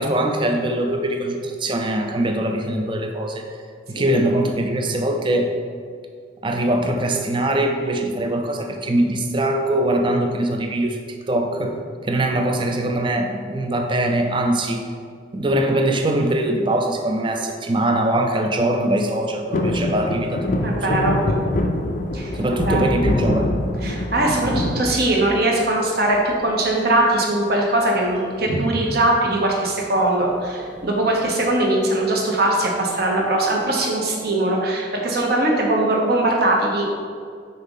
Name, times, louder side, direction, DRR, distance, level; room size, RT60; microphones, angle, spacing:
voice 1, 0.0-3.4 3.9-5.5 6.4-11.0 11.3-11.7 12.1-14.8 15.3-21.0 22.3-23.5, right 1 dB, 25° right, 3 dB, 0.5 m, -22 dB
sound 1, 19.5-25.7 26.1-26.7 28.0-28.4 28.7-28.8 29.1-29.4 30.2-31.1 31.6-31.7, left 1 dB, 45° left, 0.4 m, -24 dB
voice 2, 20.6-21.2 22.1-22.8 23.8-36.9, right 1 dB, 55° right, -1 dB, 1.1 m, -21 dB
5.5 x 3.6 x 5.5 m, 2.1 s
head